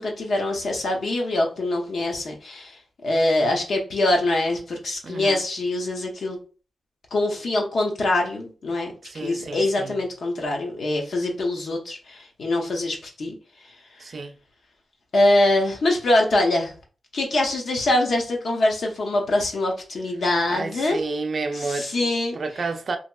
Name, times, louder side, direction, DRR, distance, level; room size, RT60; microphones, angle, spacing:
voice 1, 0.0-6.4 7.1-13.4 15.1-16.7 17.1-21.0 21.5-22.4, left 1 dB, 65° left, 0.7 m, -24 dB
voice 2, 5.0-5.4 9.0-10.0 14.0-14.3 20.5-21.9 22.3-23.0, right 3 dB, 50° right, 0.3 m, -30 dB
2.8 x 2.8 x 2.2 m
wide cardioid pair, 140°, 0 cm